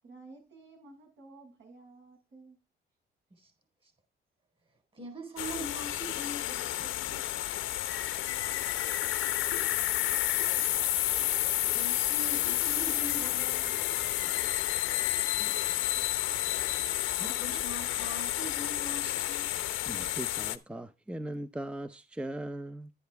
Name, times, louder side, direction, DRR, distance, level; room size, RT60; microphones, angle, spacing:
voice 1, 0.0-2.6, right 3 dB, 70° right, 7.1 m, -53 dB
voice 2, 4.9-7.2 11.6-13.8 17.2-19.5, right 1 dB, 25° right, 4.2 m, -42 dB
sound 1, 5.4-20.6, left 14 dB, 85° left, 0.9 m, -30 dB
voice 3, 19.9-22.9, right 1 dB, 5° right, 0.7 m, -39 dB
10.5 x 10.0 x 3.4 m
cardioid pair, 90°, 20 cm